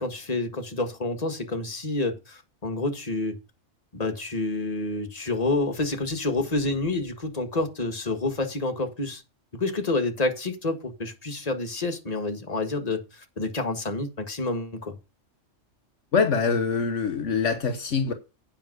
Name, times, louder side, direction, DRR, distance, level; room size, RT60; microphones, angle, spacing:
voice 1, 0.0-3.4 3.9-9.2 9.5-15.0, left 2 dB, 30° left, 1.7 m, -28 dB
voice 2, 16.1-18.1, left 5 dB, 70° left, 1.4 m, -24 dB
9.0 x 5.5 x 6.5 m
omnidirectional pair, 1.3 m